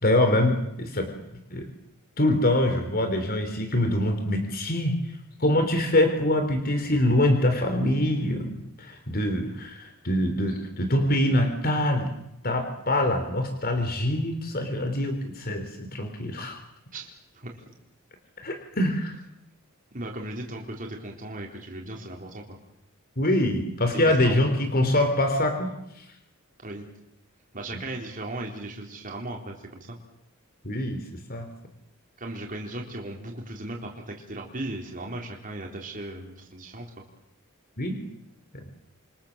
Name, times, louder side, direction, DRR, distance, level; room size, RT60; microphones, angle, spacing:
voice 1, 0.0-1.1 1.5-1.7 2.2-5.0 5.4-12.1 12.4-16.6 18.4-19.2 23.2-26.1 30.6-31.0 31.3-31.5 37.8-38.0 38.5-38.6, left 1 dB, 45° left, 6 dB, 3.6 m, -24 dB
voice 2, 16.9-17.6 19.9-22.4 24.0-24.4 26.6-26.9 27.5-30.0 32.2-36.9, right 1 dB, 40° right, 0 dB, 4.0 m, -37 dB
28.5 x 25.0 x 7.5 m, 0.82 s
head